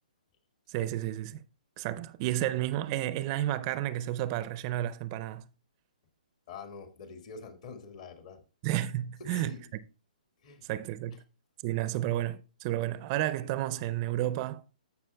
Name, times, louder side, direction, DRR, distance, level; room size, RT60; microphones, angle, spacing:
voice 1, 0.7-1.4 1.8-5.5 8.6-9.6 10.6-11.2 11.6-14.6, right 13 dB, 35° right, 0.4 m, -31 dB
voice 2, 6.5-8.4 9.3-9.6 10.4-10.6, left 5 dB, 50° left, 1.8 m, -45 dB
14.0 x 5.9 x 2.2 m
hypercardioid pair, 140°, 5 cm